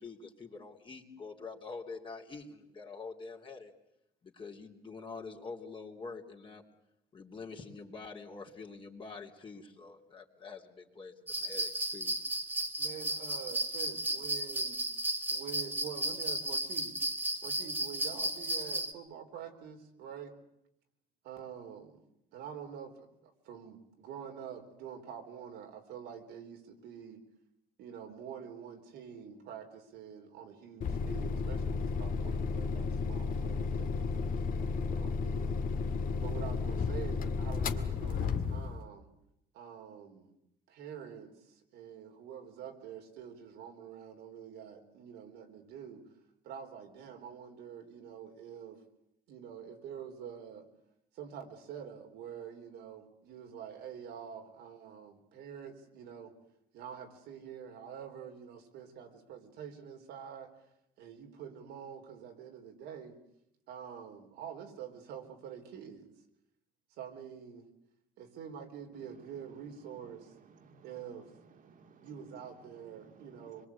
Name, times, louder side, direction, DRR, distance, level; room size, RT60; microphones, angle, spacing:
voice 1, 0.0-3.7 4.2-6.6 7.1-12.1, left 4 dB, 30° left, 1 dB, 3.1 m, -46 dB
sound 1, 11.3-18.9, right 1 dB, 10° right, 2.0 m, -34 dB
voice 2, 12.8-14.8 15.3-16.9 17.4-20.3 21.2-22.0 22.3-27.2 27.8-35.6 36.2-39.1 39.5-40.3 40.7-46.1 46.4-48.8 49.3-50.7 51.1-56.3 56.7-60.5 61.0-63.2 63.7-66.1 67.0-67.7 68.2-70.3 70.8-71.3 72.0-73.7, right 8 dB, 85° right, 4 dB, 3.9 m, -46 dB
sound 2, 30.8-38.8, left 5 dB, 55° left, 1.9 m, -33 dB
voice 3, 70.2-72.1 72.8-73.7, right 5 dB, 50° right, 6 dB, 2.4 m, -59 dB
25.0 x 22.5 x 8.4 m, 0.80 s
cardioid pair, 110°, 17 cm